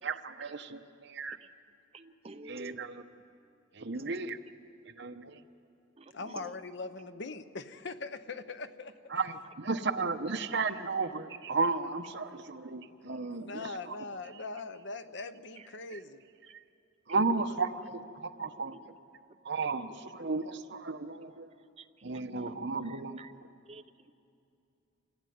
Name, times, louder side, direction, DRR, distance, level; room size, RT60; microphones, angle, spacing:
voice 1, 0.0-1.4 2.5-3.0 3.7-4.4 5.0-5.4 9.1-14.0 17.1-18.8 19.4-21.5 22.0-23.2, right 3 dB, 60° right, 8 dB, 0.9 m, -34 dB
voice 2, 1.9-2.8 3.9-4.2 6.0-6.6 15.6-15.7 18.7-18.8 21.8-21.9 22.3-22.5 22.8-23.3 23.7-24.1, right 3 dB, 30° right, 9 dB, 0.7 m, -50 dB
voice 3, 6.1-9.0 13.3-16.2, left 3 dB, 60° left, 11 dB, 0.9 m, -41 dB
26.0 x 15.5 x 9.4 m, 2.7 s
head